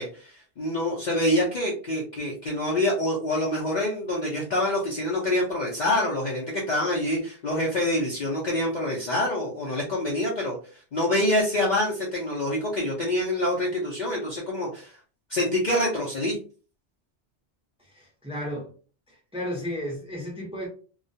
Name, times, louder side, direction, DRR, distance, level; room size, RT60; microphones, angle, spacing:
voice 1, 0.0-10.6 10.9-14.9 15.3-16.4, left 1 dB, 50° left, -4 dB, 0.6 m, -26 dB
voice 2, 17.8-18.7 19.1-20.7, equal, 5° right, -3 dB, 0.6 m, -34 dB
2.3 x 2.2 x 2.6 m, 0.39 s
omnidirectional pair, 1.2 m